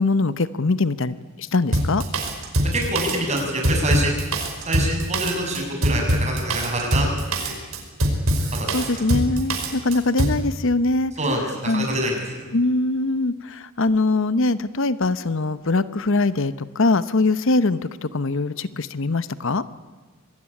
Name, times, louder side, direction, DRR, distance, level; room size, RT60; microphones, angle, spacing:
voice 1, 0.0-2.0 8.7-11.1 11.6-11.9 12.5-19.6, left 3 dB, 65° left, 14 dB, 0.9 m, -22 dB
Drum kit, 1.7-10.4, right 1 dB, 85° right, 5.2 m, -23 dB
voice 2, 2.7-4.3 4.7-7.5 8.5-8.9 11.2-12.2, right 1 dB, 35° right, 1 dB, 7.3 m, -26 dB
25.5 x 19.5 x 9.9 m, 1.4 s
head